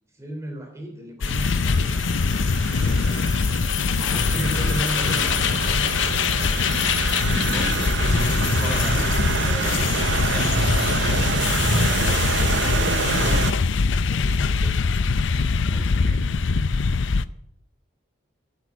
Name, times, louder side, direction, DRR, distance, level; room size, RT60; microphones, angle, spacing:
voice 1, 0.1-3.3 4.0-6.4 14.1-14.8, equal, 15° right, 3 dB, 3.1 m, -35 dB
sound 1, 1.2-17.2, left 5 dB, 70° left, 0.5 m, -22 dB
sound 2, 1.2-13.5, right 5 dB, 65° right, 0.7 m, -28 dB
voice 2, 4.1-4.5 7.5-9.1 9.4-13.5 15.7-16.3, equal, 5° left, -3 dB, 1.8 m, -32 dB
11.0 x 9.2 x 8.2 m, 0.77 s
head